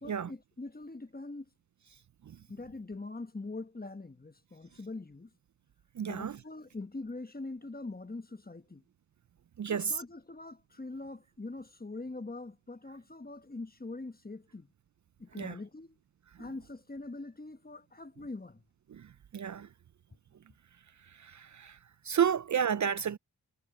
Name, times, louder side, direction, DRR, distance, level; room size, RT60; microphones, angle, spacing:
voice 1, 0.0-1.5 2.5-5.3 6.1-8.8 9.7-14.7 15.2-16.0 16.4-18.6, left 2 dB, 25° left, 1.2 m, -43 dB
voice 2, 6.0-6.3 9.6-9.9 15.4-15.5 19.3-19.7 21.2-21.7 22.1-23.2, right 8 dB, 50° right, 0.5 m, -30 dB
cardioid pair, 45°, 38 cm